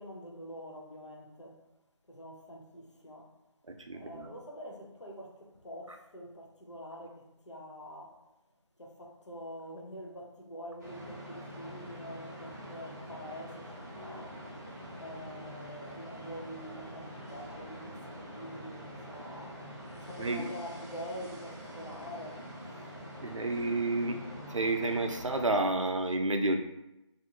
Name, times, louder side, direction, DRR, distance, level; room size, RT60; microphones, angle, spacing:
voice 1, 0.0-1.6 2.1-3.3 3.9-8.2 8.8-14.4 14.9-22.9, equal, 70° left, 0.8 m, -46 dB
voice 2, 3.7-4.3 20.2-20.5 23.2-24.2 24.5-26.6, right 2 dB, 85° right, 0.5 m, -30 dB
sound 1, 10.8-25.5, equal, 35° right, 0.6 m, -45 dB
2.6 x 2.4 x 2.8 m
figure-of-eight pair, 160°, 16 cm